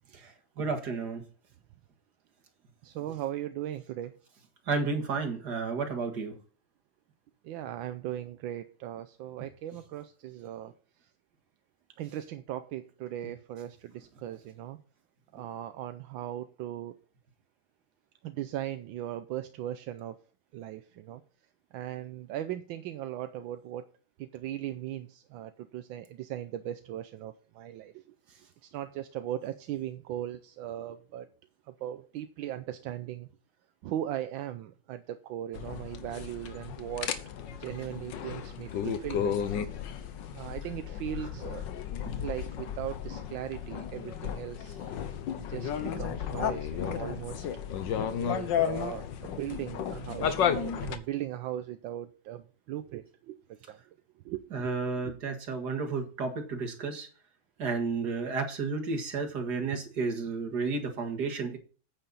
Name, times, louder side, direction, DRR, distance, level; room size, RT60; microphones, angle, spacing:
voice 1, 0.2-1.2 4.7-6.3 42.1-42.2 54.5-57.1 57.6-61.6, right 4 dB, 55° right, 5 dB, 2.4 m, -32 dB
voice 2, 2.8-4.2 7.4-10.7 11.0-11.1 12.0-14.8 15.3-17.0 18.2-20.2 20.5-21.2 21.7-23.9 24.2-31.3 31.7-33.3 33.8-37.1 37.5-39.4 40.3-41.7 42.2-44.8 45.5-47.5 48.2-54.7 55.0-55.1, right 12 dB, 80° right, 9 dB, 1.4 m, -38 dB
Sardinia-Sardaigne-Italy-bar-on-the-beach, 35.5-51.0, left 8 dB, 70° left, 1.5 m, -33 dB
9.0 x 8.9 x 4.1 m, 0.38 s
omnidirectional pair, 2.2 m